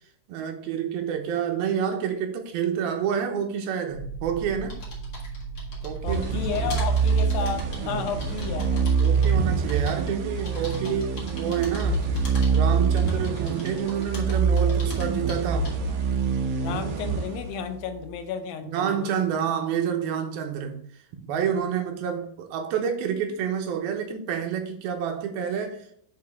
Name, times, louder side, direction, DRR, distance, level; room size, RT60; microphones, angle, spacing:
voice 1, 0.3-4.8 5.8-6.2 6.6-6.7 9.0-12.0 12.5-15.8 18.6-20.8 21.1-25.9, right 8 dB, 85° right, 2.8 m, -28 dB
sound 1, 3.9-8.9, right 5 dB, 50° right, 2.1 m, -37 dB
sound 2, 4.7-16.0, left 1 dB, 40° left, 1.7 m, -43 dB
voice 2, 6.0-8.9 10.9-11.0 16.6-19.0, left 7 dB, 80° left, 2.5 m, -32 dB
sound 3, 6.1-17.9, right 5 dB, 70° right, 1.9 m, -25 dB
6.7 x 4.8 x 3.5 m
omnidirectional pair, 4.2 m